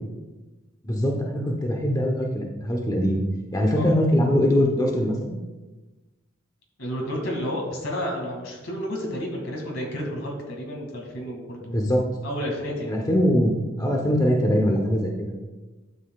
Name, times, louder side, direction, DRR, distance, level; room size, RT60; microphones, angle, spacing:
voice 1, 0.8-3.2 3.5-5.4 11.7-12.1 12.9-15.3, equal, 20° left, 0 dB, 0.9 m, -22 dB
voice 2, 6.8-11.9 12.2-12.9, equal, 70° left, 0 dB, 2.2 m, -31 dB
12.0 x 7.4 x 2.4 m, 1.2 s
head